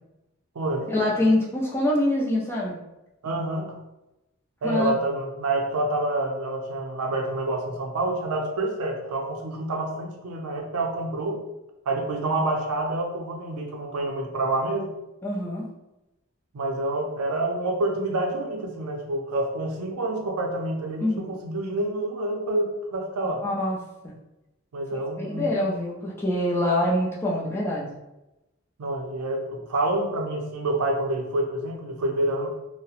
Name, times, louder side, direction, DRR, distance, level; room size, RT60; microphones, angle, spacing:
voice 1, 0.9-2.8 4.6-4.9 15.2-15.7 21.0-21.4 23.2-23.8 24.0-24.1 25.2-28.0, left 1 dB, 10° left, -4 dB, 0.4 m, -25 dB
voice 2, 3.2-3.7 4.6-11.4 11.9-14.9 16.5-23.4 24.7-25.6 28.8-32.5, right 2 dB, 90° right, 2 dB, 0.5 m, -27 dB
2.8 x 2.0 x 2.4 m, 0.94 s
head